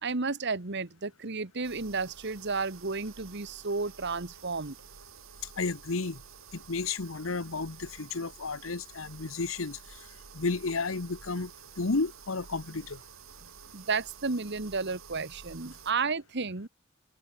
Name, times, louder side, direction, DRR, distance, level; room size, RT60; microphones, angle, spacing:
voice 1, 0.0-4.8 13.7-16.7, right 4 dB, 60° right, 1.6 m, -32 dB
sound 1, 1.6-15.9, right 7 dB, 85° right, 1.6 m, -51 dB
voice 2, 5.6-6.2 6.5-9.8 10.3-11.5 11.8-13.0, left 3 dB, 75° left, 1.1 m, -32 dB
open air
head